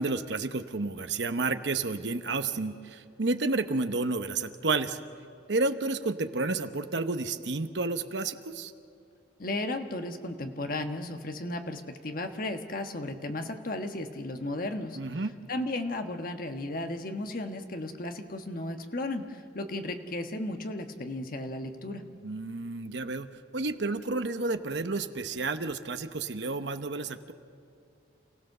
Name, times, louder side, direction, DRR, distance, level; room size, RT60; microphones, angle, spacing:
voice 1, 0.0-5.0 5.5-8.7 14.9-15.3 22.2-27.3, right 3 dB, 70° right, 9 dB, 1.0 m, -31 dB
voice 2, 9.4-15.0 15.5-22.0, left 2 dB, 50° left, 6 dB, 1.4 m, -34 dB
28.5 x 16.5 x 6.7 m, 2.5 s
head